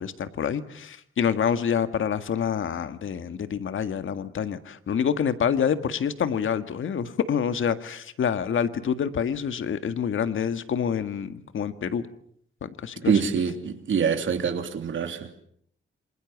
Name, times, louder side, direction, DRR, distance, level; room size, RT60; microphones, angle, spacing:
voice 1, 0.0-12.1 12.6-13.2, left 7 dB, 70° left, 1.8 m, -27 dB
voice 2, 13.0-15.3, right 6 dB, 70° right, 3.1 m, -25 dB
28.0 x 26.5 x 7.3 m
wide cardioid pair, 160°, 21 cm